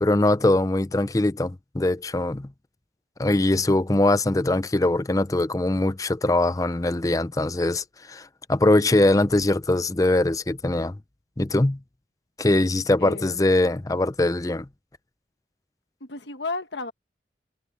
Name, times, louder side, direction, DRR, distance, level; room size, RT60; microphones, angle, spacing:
voice 1, 0.0-2.5 3.2-11.0 11.4-11.8 12.4-14.7, left 2 dB, 20° left, 0.5 m, -22 dB
voice 2, 13.0-13.4 16.0-16.9, left 3 dB, 80° left, 1.3 m, -33 dB
head